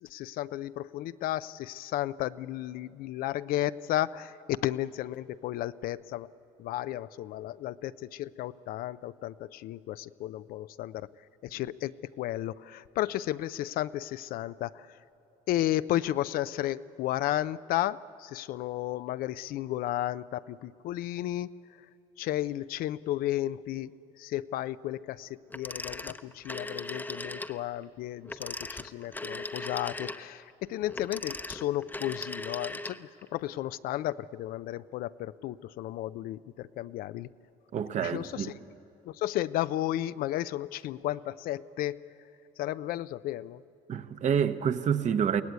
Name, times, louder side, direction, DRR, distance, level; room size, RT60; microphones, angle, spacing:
voice 1, 0.0-6.3 6.6-11.1 11.4-14.9 15.5-21.5 22.2-23.9 24.2-37.3 38.0-38.5 39.0-42.0 42.6-43.6, left 14 dB, 70° left, 0.5 m, -33 dB
Telephone, 25.5-27.6 28.2-33.3, left 2 dB, 10° left, 0.8 m, -38 dB
voice 2, 37.7-38.5 43.9-45.4, right 7 dB, 50° right, 1.0 m, -28 dB
22.5 x 17.0 x 9.5 m
supercardioid pair, 85°, 16 cm